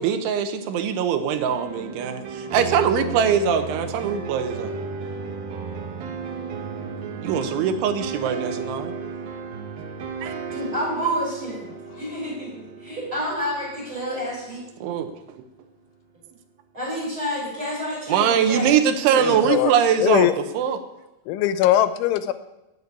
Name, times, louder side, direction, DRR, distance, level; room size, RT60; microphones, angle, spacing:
voice 1, 0.0-4.8 7.2-8.9 10.2-10.5 14.8-15.1 18.1-20.3 20.6-20.8, right 8 dB, 85° right, 8 dB, 3.5 m, -22 dB
sound 1, 1.4-15.3, right 5 dB, 65° right, 2.8 m, -34 dB
voice 2, 10.5-11.6 12.0-14.6 16.7-18.8 19.0-19.5, equal, 25° right, -2 dB, 6.2 m, -29 dB
voice 3, 19.2-19.7 20.0-20.3 21.3-22.3, left 12 dB, 90° left, 12 dB, 3.3 m, -20 dB
18.0 x 6.9 x 8.3 m, 0.95 s
omnidirectional pair, 5.3 m